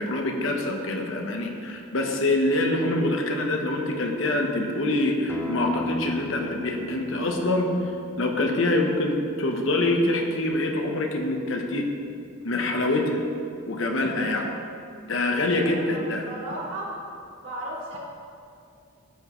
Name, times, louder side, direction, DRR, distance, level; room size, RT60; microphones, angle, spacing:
voice 1, 0.0-11.9 12.4-13.2 13.7-14.5 15.1-16.2, left 2 dB, 65° left, 2 dB, 1.0 m, -25 dB
Acoustic guitar, 5.3-10.5, left 2 dB, 10° left, 0.6 m, -39 dB
voice 2, 15.6-16.9 17.4-18.0, right 1 dB, 65° right, -5 dB, 2.3 m, -35 dB
13.5 x 6.0 x 3.1 m, 2.4 s
head